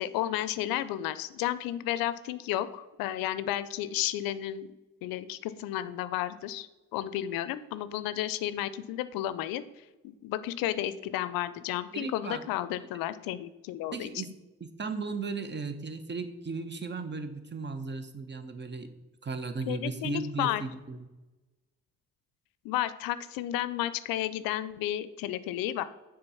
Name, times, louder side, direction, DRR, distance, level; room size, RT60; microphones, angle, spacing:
voice 1, 0.0-4.7 5.0-9.6 10.0-14.1 19.7-20.6 22.6-25.8, left 13 dB, 75° left, 14 dB, 0.5 m, -32 dB
voice 2, 11.9-12.5 13.9-14.3 14.6-18.9 19.2-21.0, right 4 dB, 30° right, 9 dB, 0.9 m, -36 dB
6.7 x 3.8 x 5.6 m, 1.1 s
hypercardioid pair, 50°, 35 cm